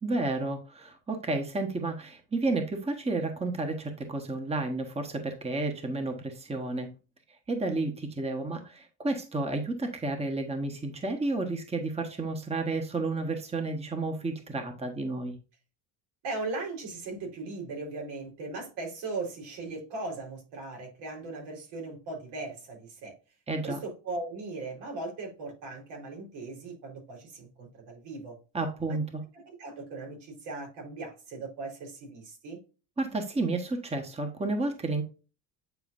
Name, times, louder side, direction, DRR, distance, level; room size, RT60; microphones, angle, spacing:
voice 1, 0.0-6.9 7.5-15.4 23.5-23.8 28.5-29.2 33.0-35.0, right 2 dB, 15° right, 5 dB, 1.2 m, -31 dB
voice 2, 16.2-23.1 23.6-28.3 29.3-32.6, right 3 dB, 80° right, 1 dB, 4.1 m, -38 dB
9.3 x 4.9 x 2.5 m, 0.33 s
cardioid pair, 125°, 42 cm